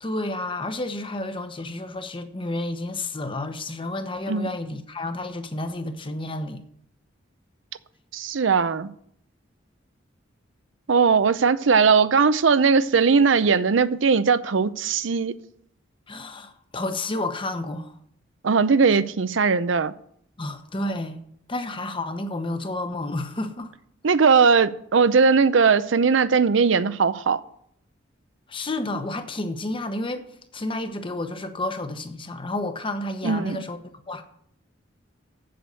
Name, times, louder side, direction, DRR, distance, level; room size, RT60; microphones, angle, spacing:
voice 1, 0.0-6.6 16.1-17.9 20.4-21.2 21.5-23.7 28.5-30.2 30.5-33.8 34.1-34.2, left 2 dB, 25° left, 1.0 m, -30 dB
voice 2, 8.1-8.9 10.9-15.4 18.4-19.9 24.0-27.4 33.2-33.6, right 5 dB, 75° right, 0.6 m, -19 dB
7.9 x 7.7 x 6.9 m
head